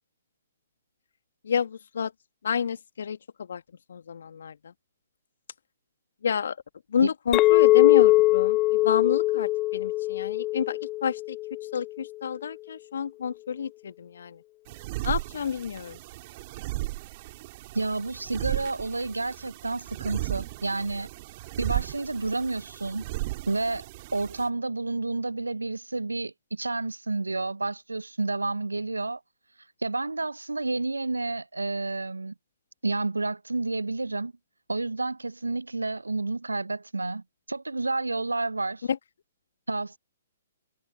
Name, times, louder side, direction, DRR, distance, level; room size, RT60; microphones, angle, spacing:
voice 1, 1.4-2.1 2.4-3.6 3.9-4.7 6.2-6.6 6.9-11.4 11.6-14.4 15.0-16.0 38.9-39.0, left 7 dB, 60° left, 1.7 m, -29 dB
Chink clink, 7.3-11.8, left 18 dB, 25° left, 0.6 m, -21 dB
sound 1, 14.7-24.5, right 19 dB, 40° right, 3.7 m, -35 dB
voice 2, 17.7-21.1 21.6-23.0 23.5-23.9 24.1-29.2 29.8-32.3 32.8-34.3 34.7-38.9 39.7-40.0, right 3 dB, 85° right, 0.6 m, -30 dB
figure-of-eight pair, 125°, 0 cm